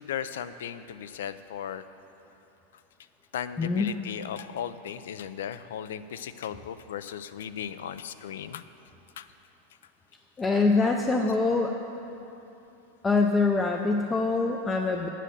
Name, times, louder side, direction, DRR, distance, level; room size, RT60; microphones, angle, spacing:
voice 1, 0.0-1.8 3.3-8.6 9.2-9.3, left 9 dB, 90° left, 13 dB, 0.4 m, -36 dB
voice 2, 3.6-3.9 10.4-11.7 13.0-15.1, left 3 dB, 10° left, 2 dB, 0.3 m, -24 dB
8.8 x 7.5 x 6.6 m, 2.9 s
supercardioid pair, 170°, 0 cm